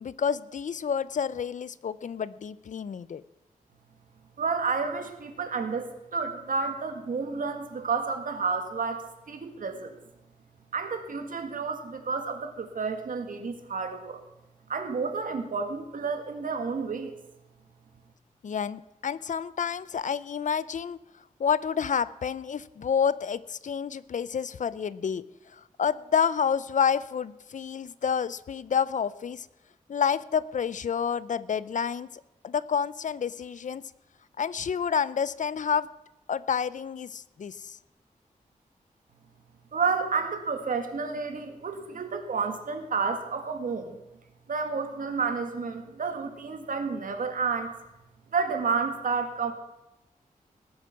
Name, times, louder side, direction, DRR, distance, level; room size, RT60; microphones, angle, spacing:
voice 1, 0.0-3.2 18.4-21.0 21.4-25.2 25.6-29.5 29.9-32.1 32.4-33.8 34.4-35.9 36.3-37.8, left 7 dB, 65° left, 17 dB, 0.5 m, -29 dB
voice 2, 4.4-9.9 10.7-14.2 14.7-17.2 39.7-44.0 44.5-47.7 48.3-49.5, right 5 dB, 75° right, 7 dB, 1.8 m, -30 dB
19.5 x 8.3 x 5.9 m, 0.96 s
wide cardioid pair, 110°, 14 cm